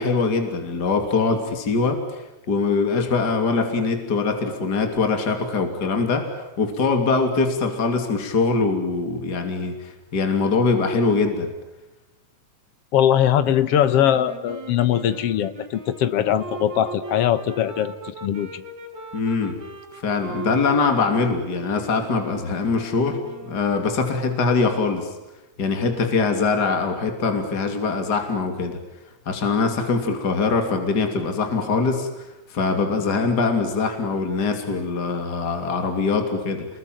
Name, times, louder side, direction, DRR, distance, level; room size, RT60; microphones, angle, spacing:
voice 1, 0.0-6.3 6.6-11.5 19.1-19.6 20.0-25.1 25.6-28.8 29.3-32.1 32.5-36.7, left 4 dB, 35° left, 5 dB, 3.3 m, -23 dB
voice 2, 12.9-18.6, left 10 dB, 60° left, 13 dB, 2.0 m, -21 dB
sound 1, 13.8-23.8, right 3 dB, 75° right, 6.0 m, -39 dB
29.5 x 22.0 x 9.1 m, 1.0 s
omnidirectional pair, 3.3 m